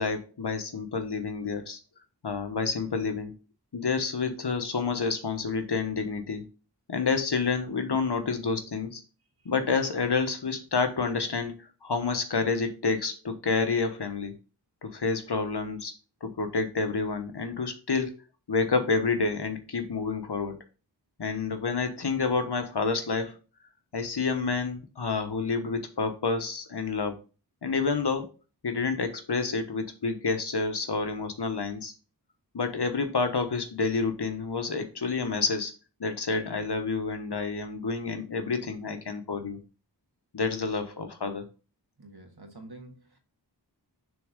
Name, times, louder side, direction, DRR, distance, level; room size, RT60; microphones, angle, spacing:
voice 1, 0.0-1.8 2.2-3.3 3.7-6.4 6.9-9.0 9.4-14.3 14.8-15.9 16.2-18.2 18.5-20.6 21.2-23.4 23.9-27.2 27.6-28.3 28.6-31.9 32.5-35.7 36.0-39.6 40.3-41.4, left 4 dB, 70° left, 1.1 m, -29 dB
voice 2, 39.3-39.6 42.0-43.2, right 2 dB, 65° right, 1.7 m, -48 dB
6.7 x 3.6 x 5.2 m
wide cardioid pair, 40°, 42 cm